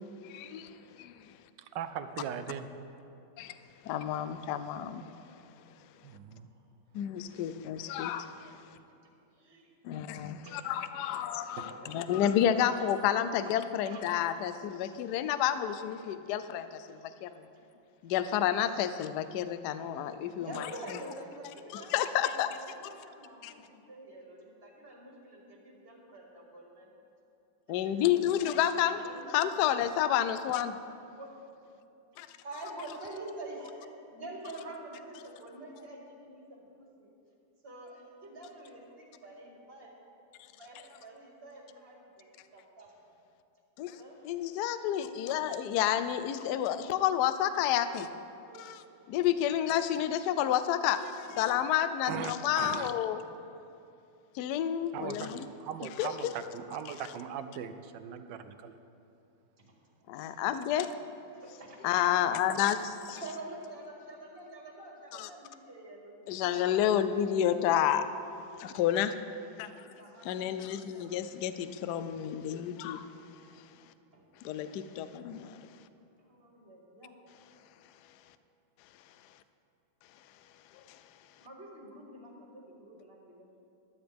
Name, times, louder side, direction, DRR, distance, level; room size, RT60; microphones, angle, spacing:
voice 1, 0.2-0.7 1.0-1.1 3.4-3.5 3.8-5.0 6.9-8.6 9.8-11.6 11.9-17.3 18.0-20.7 21.7-22.5 23.4-23.5 27.7-29.0 29.3-30.8 32.2-32.3 43.8-44.0 44.2-48.1 48.6-48.7 49.1-51.0 51.4-53.2 54.3-55.5 56.0-56.3 60.1-60.9 61.8-63.0 65.2-65.3 66.3-68.1 68.6-69.1 69.6-69.8 70.2-73.1 74.4-75.6, left 10 dB, 75° left, 12 dB, 0.9 m, -30 dB
voice 2, 1.6-2.7 6.0-6.5 52.1-52.9 54.9-55.3 55.6-58.8, right 8 dB, 70° right, 10 dB, 1.2 m, -39 dB
voice 3, 9.3-10.8 11.2-12.0 12.8-12.9 13.4-13.6 13.8-14.2 20.3-26.9 28.9-29.6 31.1-31.3 32.4-37.1 37.6-39.9 40.5-42.9 43.9-44.2 47.8-48.0 48.4-48.8 49.5-49.6 50.7-51.5 55.4-55.5 59.6-59.7 60.0-60.1 60.7-60.8 61.4-61.8 63.1-66.3 70.0-70.5 70.9-71.4 74.1-74.3 76.2-77.1 81.4-83.5, right 2 dB, 30° right, -2 dB, 2.2 m, -47 dB
15.5 x 12.0 x 3.5 m, 2.7 s
omnidirectional pair, 2.2 m